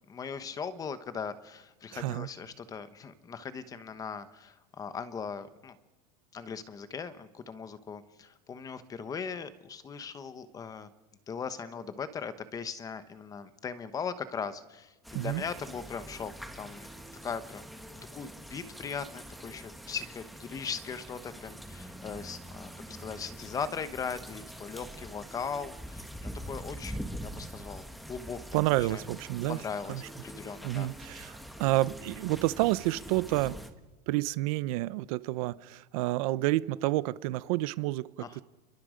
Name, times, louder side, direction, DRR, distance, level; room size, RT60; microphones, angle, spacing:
voice 1, 0.1-5.8 6.3-10.9 11.3-16.9 17.2-17.7 18.1-28.4 28.9-29.0 29.5-30.9 38.2-38.4, left 6 dB, 15° left, 1.1 m, -39 dB
voice 2, 1.9-2.3 15.1-15.4 28.5-29.6 29.9-30.0 30.6-33.6 34.1-38.1 38.4-38.5, right 17 dB, 60° right, 0.7 m, -29 dB
sound 1, 15.0-33.7, equal, ahead, 1.3 m, -44 dB
29.0 x 23.0 x 5.1 m
supercardioid pair, 175°, 21 cm